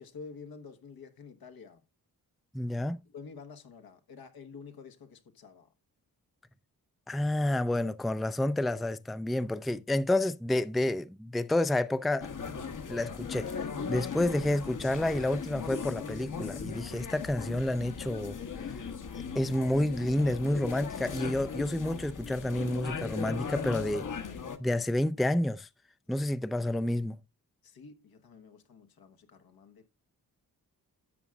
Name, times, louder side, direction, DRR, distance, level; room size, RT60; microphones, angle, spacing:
voice 1, 0.0-1.8 3.0-5.7 27.6-29.9, left 5 dB, 75° left, 1.3 m, -49 dB
voice 2, 2.5-3.0 7.1-12.3 12.9-18.4 19.3-24.0 24.6-25.7 26.1-27.2, left 1 dB, ahead, 0.4 m, -29 dB
sound 1, 12.2-24.6, left 6 dB, 55° left, 1.2 m, -38 dB
12.5 x 7.5 x 2.3 m
cardioid pair, 95°, 36 cm